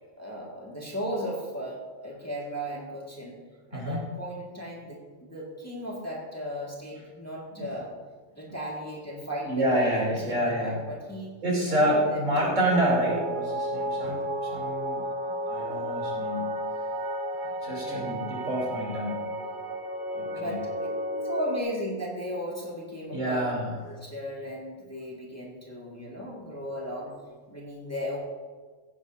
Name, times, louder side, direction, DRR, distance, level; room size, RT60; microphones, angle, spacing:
voice 1, 0.2-3.4 3.7-7.9 8.3-11.4 11.7-12.6 17.8-18.2 20.3-23.4 23.8-27.2 27.5-28.2, equal, 10° left, -3 dB, 1.8 m, -36 dB
voice 2, 9.5-10.8 11.4-15.0 15.5-16.6 17.3-19.2 20.1-20.6 23.1-23.7, right 1 dB, 80° right, -3 dB, 3.7 m, -28 dB
sound 1, 12.7-21.6, right 1 dB, 45° right, 0.9 m, -32 dB
15.0 x 10.5 x 2.7 m, 1.4 s
omnidirectional pair, 1.3 m